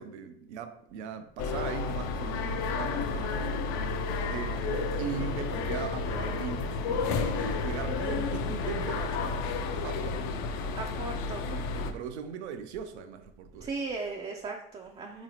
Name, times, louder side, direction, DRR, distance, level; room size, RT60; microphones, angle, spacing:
voice 1, 0.0-3.7 4.3-9.5 9.8-10.4 11.5-13.7, right 7 dB, 80° right, 0.5 m, -39 dB
sound 1, 1.4-11.9, left 4 dB, 55° left, 0.5 m, -31 dB
voice 2, 4.3-4.7 10.7-11.4 13.6-15.2, right 3 dB, 20° right, 0.4 m, -37 dB
3.9 x 3.0 x 2.8 m
hypercardioid pair, 80°, 33 cm